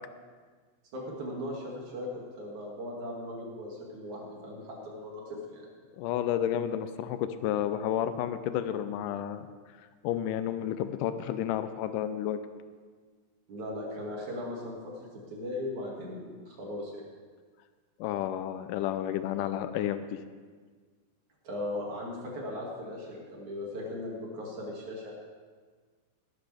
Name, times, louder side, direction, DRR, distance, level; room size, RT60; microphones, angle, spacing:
voice 1, 0.9-5.2 5.5-5.6 13.5-17.0 21.4-25.1, left 1 dB, 55° right, -3 dB, 3.5 m, -38 dB
voice 2, 6.0-9.5 10.0-12.4 18.0-20.2, left 10 dB, 80° left, 11 dB, 1.9 m, -31 dB
17.5 x 11.5 x 3.5 m, 1.5 s
omnidirectional pair, 4.3 m